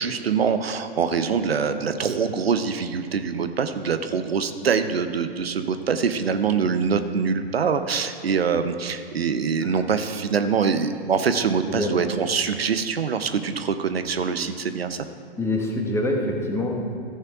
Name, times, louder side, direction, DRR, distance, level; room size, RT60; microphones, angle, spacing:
voice 1, 0.0-15.0, right 6 dB, 80° right, 9 dB, 0.7 m, -24 dB
voice 2, 15.4-16.8, left 1 dB, 10° left, 0 dB, 1.4 m, -25 dB
14.0 x 6.6 x 4.8 m, 2.4 s
figure-of-eight pair, 105°, 30 cm